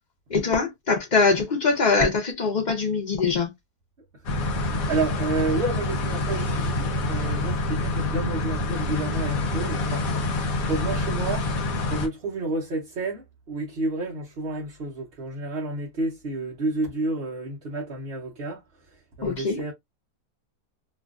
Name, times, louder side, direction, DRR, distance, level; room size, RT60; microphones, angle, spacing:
voice 1, 0.3-3.5 19.2-19.6, left 4 dB, 40° left, 0.7 m, -23 dB
sound 1, 4.3-12.1, left 2 dB, 65° left, 1.2 m, -27 dB
voice 2, 4.9-10.1 10.6-19.7, right 2 dB, 45° right, 0.9 m, -30 dB
3.0 x 2.5 x 2.4 m
omnidirectional pair, 1.7 m